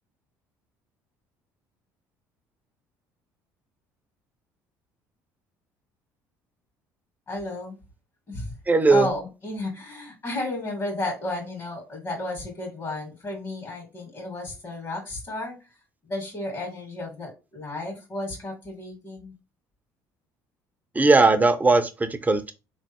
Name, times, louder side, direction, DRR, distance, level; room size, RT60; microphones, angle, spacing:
voice 1, 7.3-7.8 8.3-8.5 8.9-15.5 16.1-19.3, left 2 dB, 40° left, 1.9 m, -33 dB
voice 2, 8.7-9.1 20.9-22.5, right 3 dB, 20° right, 0.6 m, -19 dB
3.7 x 3.1 x 2.9 m
hypercardioid pair, 70°, 9 cm